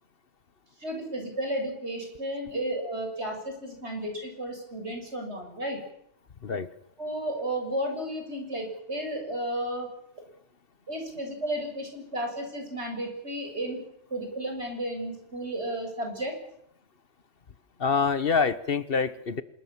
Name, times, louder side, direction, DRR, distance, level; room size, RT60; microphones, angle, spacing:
voice 1, 0.8-5.8 7.0-9.9 10.9-13.8 14.1-16.3, right 1 dB, 70° right, 3 dB, 7.1 m, -33 dB
voice 2, 17.8-19.4, left 5 dB, 55° left, 14 dB, 1.3 m, -26 dB
26.0 x 21.5 x 7.3 m, 0.77 s
omnidirectional pair, 1.2 m